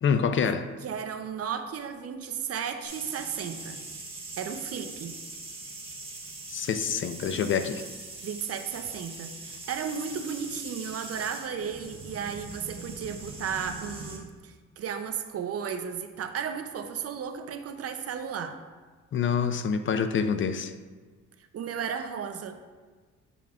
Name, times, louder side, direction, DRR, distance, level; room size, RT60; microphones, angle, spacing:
voice 1, 0.0-0.7 6.5-7.8 19.1-20.7, left 6 dB, 40° left, 10 dB, 0.4 m, -26 dB
voice 2, 0.8-3.8 4.4-5.1 8.2-18.6 21.5-22.6, right 7 dB, 55° right, 7 dB, 0.6 m, -34 dB
sound 1, 2.8-14.2, right 2 dB, 20° right, 1.5 m, -42 dB
7.0 x 6.8 x 2.4 m, 1.4 s
cardioid pair, 90°, 30 cm